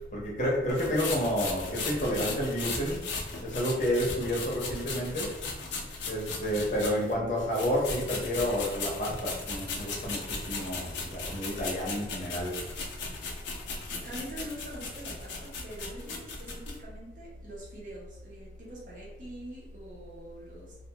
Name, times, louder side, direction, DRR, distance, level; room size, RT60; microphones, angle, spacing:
voice 1, 0.1-3.0 3.4-12.6, equal, 45° left, -4 dB, 0.7 m, -30 dB
sound 1, 0.7-7.1 7.5-16.8, left 4 dB, 85° left, 0.5 m, -37 dB
voice 2, 13.9-20.8, right 1 dB, 45° right, -4 dB, 0.7 m, -44 dB
2.4 x 2.3 x 2.8 m, 0.99 s
head